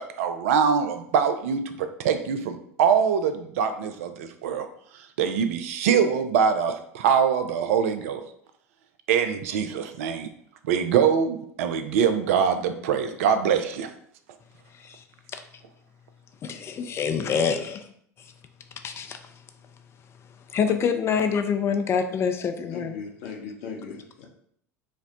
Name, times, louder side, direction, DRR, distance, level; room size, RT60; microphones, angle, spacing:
voice 1, 0.2-4.7 5.2-8.2 9.1-10.3 10.6-13.9, right 7 dB, 60° right, 8 dB, 0.4 m, -23 dB
voice 2, 16.4-17.9 18.8-19.2 20.5-23.0, left 6 dB, 30° left, 7 dB, 0.4 m, -26 dB
voice 3, 22.7-24.3, left 5 dB, 55° left, 1 dB, 0.8 m, -38 dB
4.9 x 2.1 x 2.8 m, 0.66 s
figure-of-eight pair, 75°, 9 cm